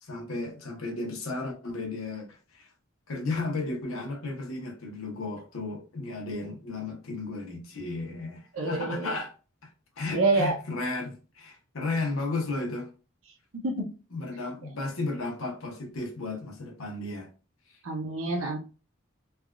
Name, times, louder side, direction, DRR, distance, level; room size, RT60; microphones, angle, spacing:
voice 1, 0.0-2.7 3.1-9.3 9.6-9.7 10.0-12.9 14.1-17.3, left 3 dB, 75° left, 0.8 m, -34 dB
voice 2, 8.5-9.1 10.1-10.6 13.5-13.9 17.8-18.6, right 3 dB, 70° right, 0.6 m, -27 dB
3.3 x 2.3 x 2.2 m
head